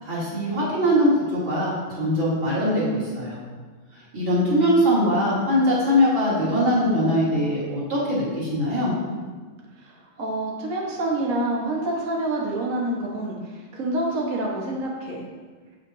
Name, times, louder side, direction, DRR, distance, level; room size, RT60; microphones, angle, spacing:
voice 1, 0.0-3.4 4.1-8.9, equal, 35° right, -9 dB, 3.7 m, -22 dB
voice 2, 9.8-15.2, right 1 dB, 80° right, -3 dB, 0.7 m, -27 dB
15.0 x 6.0 x 2.8 m, 1.4 s
omnidirectional pair, 3.8 m